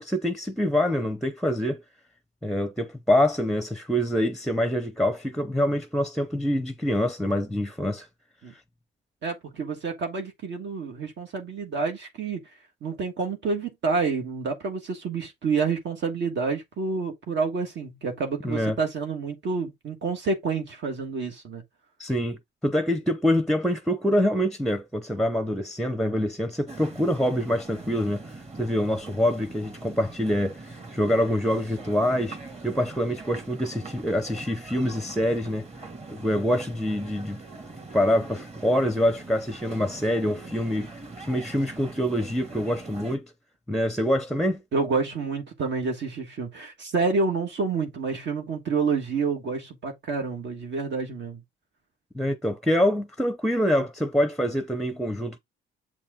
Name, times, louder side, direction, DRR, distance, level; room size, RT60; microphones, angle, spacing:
voice 1, 0.0-1.8 2.4-8.1 8.5-8.6 18.4-18.8 22.0-35.7 36.1-37.4 37.9-40.9 41.2-43.3 43.7-44.6 52.1-55.4, equal, ahead, 0.7 m, -25 dB
voice 2, 9.2-12.4 12.8-21.6 44.7-51.4, right 4 dB, 60° right, 1.5 m, -28 dB
sound 1, 26.7-43.2, right 3 dB, 30° right, 2.2 m, -42 dB
7.5 x 4.3 x 3.6 m
cardioid pair, 110°, 21 cm